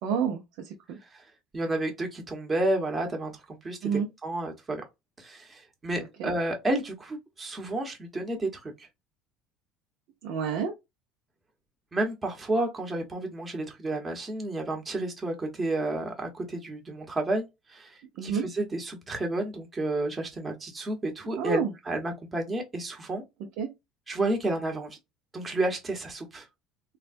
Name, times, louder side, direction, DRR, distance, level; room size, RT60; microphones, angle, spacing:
voice 1, 0.0-1.0 3.8-4.1 6.2-6.3 10.2-10.7 18.2-18.4 21.4-21.7 23.6-23.7, right 6 dB, 70° right, 0.7 m, -29 dB
voice 2, 1.5-4.8 5.2-8.9 11.9-23.2 24.1-25.0 25.3-26.5, right 2 dB, 20° right, 1.0 m, -31 dB
3.2 x 2.3 x 2.5 m
supercardioid pair, 100°, 0 cm